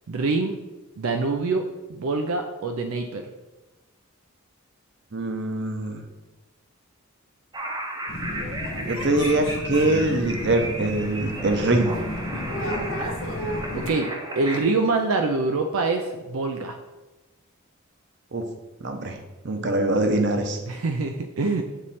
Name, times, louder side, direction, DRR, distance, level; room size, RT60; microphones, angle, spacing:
voice 1, 0.1-0.5 1.0-3.3 13.7-14.1 14.4-16.8 20.7-21.6, right 3 dB, 80° right, 5 dB, 0.4 m, -25 dB
voice 2, 5.1-6.0 8.9-11.9 18.3-18.4 18.8-19.2 19.4-20.6, right 2 dB, 55° right, 5 dB, 0.7 m, -23 dB
sound 1, 7.5-14.6, right 1 dB, 20° right, 0.6 m, -34 dB
sound 2, 8.1-13.9, left 1 dB, 70° left, 0.7 m, -32 dB
7.2 x 3.1 x 4.2 m, 1.1 s
head